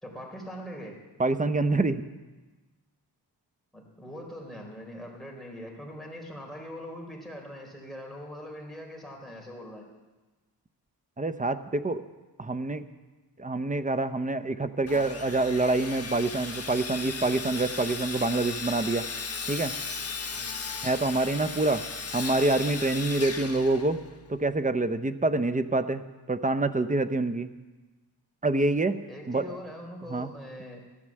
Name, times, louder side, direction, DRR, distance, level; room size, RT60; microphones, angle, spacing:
voice 1, 0.0-1.0 3.7-9.8 20.3-20.6 29.1-30.8, equal, ahead, -1 dB, 4.2 m, -42 dB
voice 2, 1.2-2.0 11.2-12.0 12.4-12.8 13.4-19.0 19.5-19.7 20.8-21.8 22.1-24.0 24.3-26.0 26.3-27.5 28.4-29.0 29.3-29.6 30.1-30.3, right 2 dB, 20° right, 11 dB, 0.7 m, -26 dB
Sawing, 14.9-24.3, left 4 dB, 35° left, 1.5 m, -36 dB
14.5 x 11.0 x 7.5 m, 1.2 s
wide cardioid pair, 90°, 41 cm